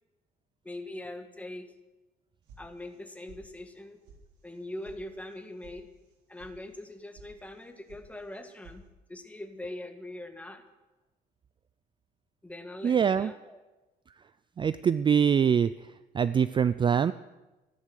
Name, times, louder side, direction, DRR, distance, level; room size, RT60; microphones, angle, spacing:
voice 1, 0.6-1.7 2.6-4.0 4.4-5.9 6.3-8.8 9.1-10.6 12.4-13.6, left 1 dB, 10° left, 6 dB, 1.6 m, -42 dB
sound 1, 2.5-3.0 3.3-3.8 4.0-4.2 4.5-5.0 5.3-5.7 6.0-6.5 6.8-7.3 7.6-8.1 8.3-8.8, right 4 dB, 90° right, 3.6 m, -53 dB
voice 2, 12.8-13.3 14.6-15.7 16.1-17.1, right 7 dB, 30° right, 15 dB, 0.4 m, -23 dB
14.5 x 11.5 x 6.5 m, 1.1 s
cardioid pair, 110°, 17 cm